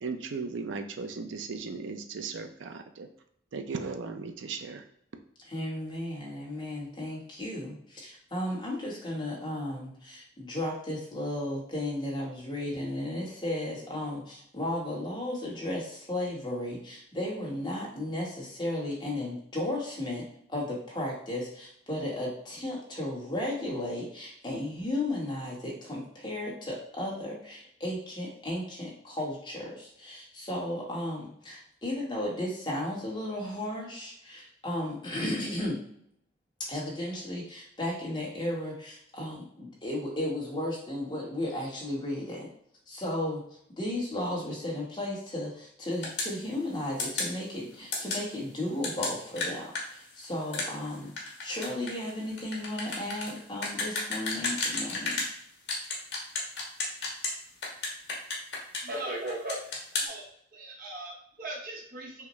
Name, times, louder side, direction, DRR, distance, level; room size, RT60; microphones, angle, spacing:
voice 1, 0.0-3.1 3.5-4.8, right 4 dB, 80° right, 7 dB, 0.5 m, -36 dB
voice 2, 5.4-20.2 20.5-35.8 36.7-42.5 42.9-43.4 43.8-51.1 51.4-55.2, left 1 dB, 25° left, -4 dB, 1.2 m, -34 dB
sound 1, 46.0-46.3 47.0-47.3 47.9-48.2 48.8-55.3 55.7-57.3 57.6-59.0 59.3-60.1, left 3 dB, 65° left, 1.2 m, -32 dB
voice 3, 58.8-59.6 59.9-62.3, right 1 dB, 45° right, 1 dB, 0.8 m, -38 dB
5.7 x 2.1 x 3.1 m, 0.69 s
head